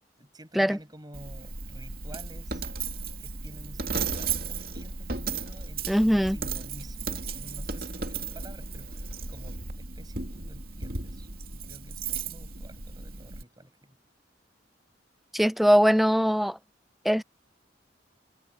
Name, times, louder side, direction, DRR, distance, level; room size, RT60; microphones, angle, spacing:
voice 1, 0.2-2.7 3.2-14.0, right 1 dB, 20° right, 5.7 m, -50 dB
Coin (dropping), 1.1-13.4, right 4 dB, 55° right, 2.5 m, -35 dB
voice 2, 5.9-6.4 15.3-16.6 17.0-17.2, equal, ahead, 0.3 m, -21 dB
head